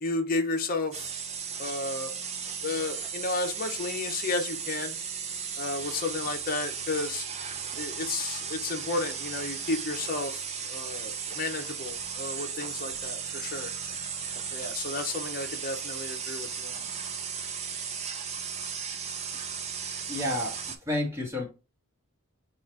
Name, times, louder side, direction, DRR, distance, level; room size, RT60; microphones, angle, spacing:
voice 1, 0.0-1.1 1.6-2.1 2.6-4.9 5.6-7.3 7.8-10.4 10.7-13.7 14.5-16.9, left 3 dB, 40° left, 0.8 m, -32 dB
sound 1, 0.9-20.8, right 6 dB, 30° right, 0.5 m, -36 dB
voice 2, 20.1-21.4, left 1 dB, 15° right, 1.3 m, -30 dB
3.9 x 2.5 x 4.5 m
head